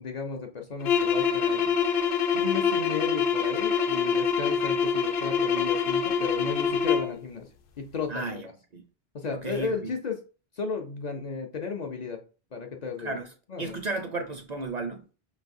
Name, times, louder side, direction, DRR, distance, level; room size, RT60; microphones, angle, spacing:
voice 1, 0.0-1.7 2.3-7.5 7.8-8.4 9.1-10.2 10.6-12.2 12.5-13.2 13.5-13.7, left 5 dB, 50° left, 0.6 m, -34 dB
sound 1, 0.8-7.2, left 6 dB, 80° left, 0.8 m, -25 dB
voice 2, 8.1-8.5 8.7-8.8 9.3-9.9 13.0-13.3 13.6-15.0, right 3 dB, 50° right, 0.6 m, -33 dB
5.4 x 3.2 x 2.5 m
omnidirectional pair, 1.1 m